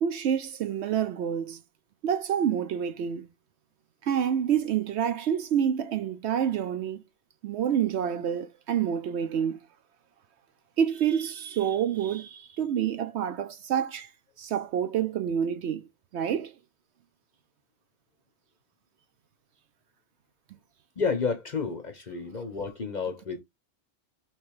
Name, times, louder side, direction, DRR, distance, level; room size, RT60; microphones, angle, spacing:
voice 1, 0.0-1.6 2.0-3.3 4.0-7.0 7.4-9.6 10.8-14.1 14.4-15.8 16.1-16.5, right 8 dB, 65° right, 0.8 m, -28 dB
voice 2, 21.0-23.4, left 5 dB, 45° left, 0.7 m, -30 dB
3.3 x 3.1 x 4.6 m
omnidirectional pair, 1.3 m